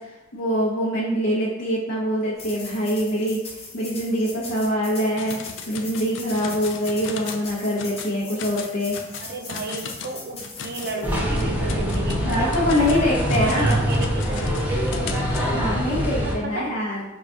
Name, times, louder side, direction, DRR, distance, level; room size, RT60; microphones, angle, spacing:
voice 1, 0.3-3.4 3.7-5.4 5.7-9.0 12.2-13.7 15.5-17.0, equal, 90° left, -9 dB, 0.7 m, -24 dB
sound 1, 2.4-11.2, left 3 dB, 30° left, 0.7 m, -40 dB
sound 2, 5.2-7.5 7.8-8.1 8.4-15.5, left 6 dB, 65° left, 0.3 m, -37 dB
voice 2, 9.2-14.9 16.2-16.8, right 3 dB, 55° right, 3 dB, 0.5 m, -33 dB
sound 3, 11.0-16.3, equal, 10° right, 0.6 m, -24 dB
4.7 x 2.2 x 2.5 m, 1.0 s
head